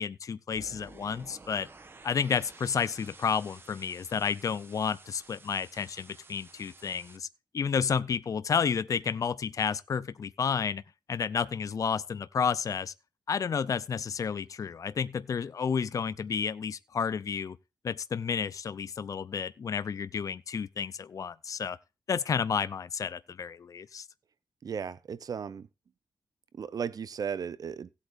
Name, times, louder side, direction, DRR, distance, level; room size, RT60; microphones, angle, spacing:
voice 1, 0.0-1.7 2.0-7.3 7.5-10.8 11.1-12.9 13.3-17.6 17.8-21.8 22.1-24.1, left 6 dB, 50° left, 0.5 m, -31 dB
sound 1, 0.6-7.2, right 3 dB, 30° right, 1.0 m, -52 dB
voice 2, 24.6-25.7 26.6-27.9, right 7 dB, 55° right, 0.6 m, -35 dB
17.0 x 8.3 x 2.5 m
wide cardioid pair, 110°, 8 cm